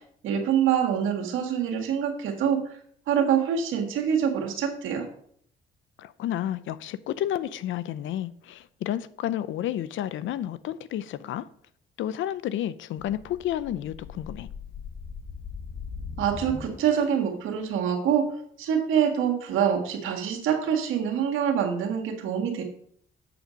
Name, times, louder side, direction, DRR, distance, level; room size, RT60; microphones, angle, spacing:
voice 1, 0.2-2.8 3.1-5.1 16.2-18.3 18.6-22.6, right 8 dB, 85° right, 1.8 m, -25 dB
voice 2, 6.0-11.5 12.0-14.5, left 11 dB, 80° left, 0.6 m, -31 dB
sound 1, 13.0-17.3, left 5 dB, 50° left, 1.3 m, -40 dB
7.7 x 6.6 x 5.1 m
cardioid pair, 90°, 20 cm